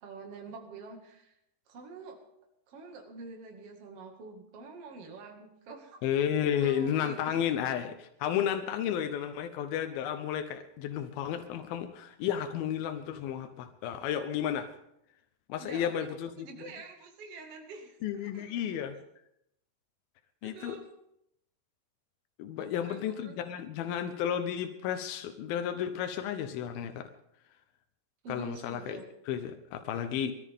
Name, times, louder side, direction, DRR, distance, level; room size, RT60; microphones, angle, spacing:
voice 1, 0.0-1.3 1.7-2.2 2.7-6.0 6.5-7.4 15.6-16.1 16.4-18.8 20.4-20.8 22.6-23.4 28.2-29.0, right 4 dB, 45° right, 2 dB, 2.2 m, -46 dB
voice 2, 6.0-14.7 15.5-16.7 18.0-19.0 20.4-20.8 22.4-27.0 28.3-29.0 29.3-30.3, left 9 dB, 90° left, 7 dB, 2.1 m, -32 dB
23.0 x 13.5 x 3.7 m, 0.77 s
omnidirectional pair, 5.5 m